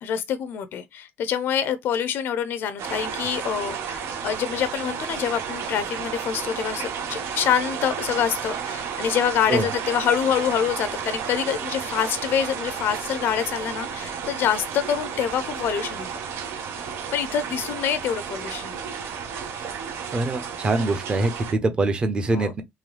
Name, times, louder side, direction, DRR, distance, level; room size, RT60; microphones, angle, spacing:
voice 1, 0.0-16.1 17.1-18.8 22.3-22.5, left 8 dB, 55° left, 0.5 m, -26 dB
sound 1, 2.8-21.5, right 7 dB, 90° right, 1.0 m, -32 dB
voice 2, 20.1-22.6, right 2 dB, 25° right, 0.6 m, -24 dB
3.8 x 3.1 x 3.2 m
cardioid pair, 180°, 4 cm